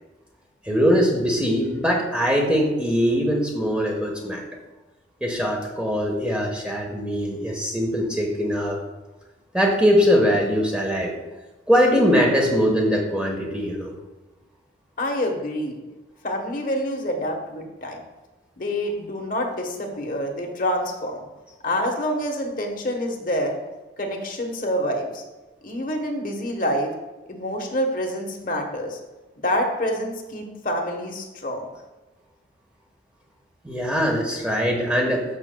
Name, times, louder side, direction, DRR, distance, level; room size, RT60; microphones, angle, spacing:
voice 1, 0.7-4.4 5.2-8.8 9.5-11.1 11.7-13.9 33.6-35.2, equal, 5° right, -1 dB, 1.2 m, -21 dB
voice 2, 15.0-15.8 16.2-18.0 18.6-21.2 21.6-23.6 24.0-25.2 25.6-26.9 27.3-29.0 29.4-31.7, equal, 45° left, 2 dB, 1.1 m, -27 dB
13.5 x 6.1 x 2.2 m, 1.2 s
head